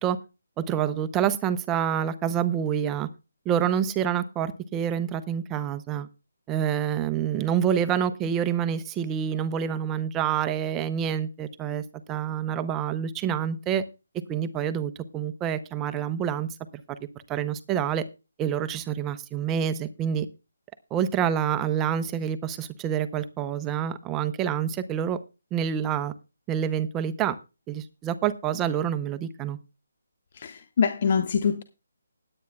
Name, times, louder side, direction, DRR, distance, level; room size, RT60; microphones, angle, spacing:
voice 1, 0.6-3.1 3.4-6.1 6.5-13.8 14.3-16.5 17.3-18.0 18.4-20.3 20.9-25.2 25.5-26.1 26.5-27.4 27.7-29.6, right 9 dB, 15° right, 0.7 m, -27 dB
voice 2, 30.4-31.6, left 6 dB, 45° left, 0.7 m, -24 dB
20.0 x 8.9 x 2.3 m
hypercardioid pair, 160°, 0 cm